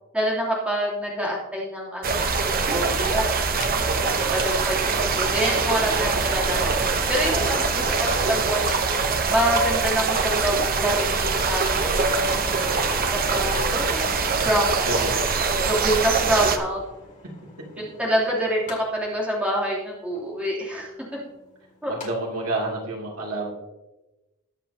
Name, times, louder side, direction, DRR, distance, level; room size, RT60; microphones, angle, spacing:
voice 1, 0.1-3.3 4.0-9.0 9.3-12.5 13.1-15.0 15.6-16.8 17.8-20.9 21.8-22.0, equal, 5° right, -5 dB, 3.0 m, -27 dB
sound 1, 2.0-16.6, right 4 dB, 45° right, 0.8 m, -23 dB
Mechanical fan, 2.7-22.1 22.4-22.5, left 2 dB, 35° left, 2.5 m, -39 dB
voice 2, 3.5-4.0 14.8-15.1 17.8-17.9 21.9-23.5, right 2 dB, 80° right, -2 dB, 2.8 m, -29 dB
20.5 x 7.4 x 2.9 m, 1.0 s
head